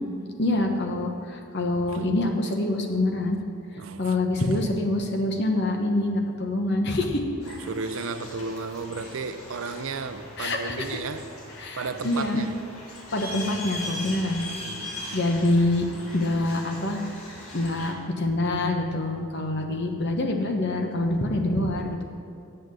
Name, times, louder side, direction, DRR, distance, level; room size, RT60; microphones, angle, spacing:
voice 1, 0.4-3.4 4.0-7.2 10.4-11.0 11.6-12.5 13.1-14.4 15.1-15.9 16.1-17.0 17.5-22.0, left 2 dB, 50° left, 3 dB, 1.0 m, -25 dB
voice 2, 3.7-4.2 7.5-11.3 11.8-12.6 14.6-15.4, right 4 dB, 65° right, 11 dB, 0.5 m, -34 dB
sound 1, 7.4-17.9, left 1 dB, 75° left, 2.0 m, -40 dB
8.0 x 6.6 x 7.6 m, 2.6 s
head